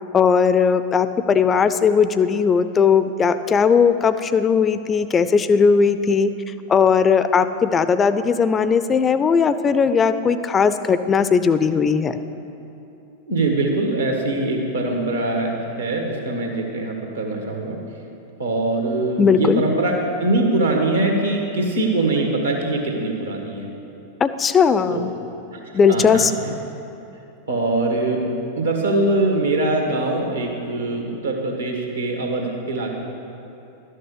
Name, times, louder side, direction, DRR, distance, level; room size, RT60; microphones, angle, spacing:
voice 1, 0.1-6.3 6.7-12.2 19.2-19.6 24.2-25.1 25.7-26.3, left 6 dB, 20° left, 12 dB, 0.4 m, -18 dB
voice 2, 13.3-17.8 18.4-23.7 24.9-25.0 25.5-25.6 25.8-26.5 27.5-28.2 28.6-32.9, right 2 dB, 75° right, 1 dB, 1.7 m, -22 dB
11.5 x 6.5 x 6.6 m, 2.9 s
figure-of-eight pair, 90°, 0 cm